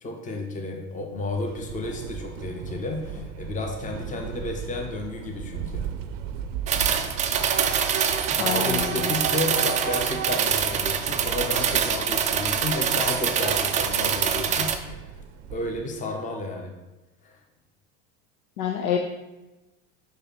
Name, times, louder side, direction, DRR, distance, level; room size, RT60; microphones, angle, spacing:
voice 1, 0.0-5.8 8.4-15.1 15.5-16.7 17.2-17.3, left 2 dB, 15° left, 2 dB, 0.9 m, -32 dB
Train / Subway metro underground, 1.2-16.0, right 8 dB, 60° right, 0.6 m, -36 dB
sound 1, 6.7-14.8, right 7 dB, 20° right, 0.3 m, -25 dB
voice 2, 8.4-9.1 18.6-19.0, left 9 dB, 70° left, 3 dB, 0.7 m, -27 dB
5.3 x 5.3 x 4.2 m, 1.0 s
figure-of-eight pair, 75°, 44 cm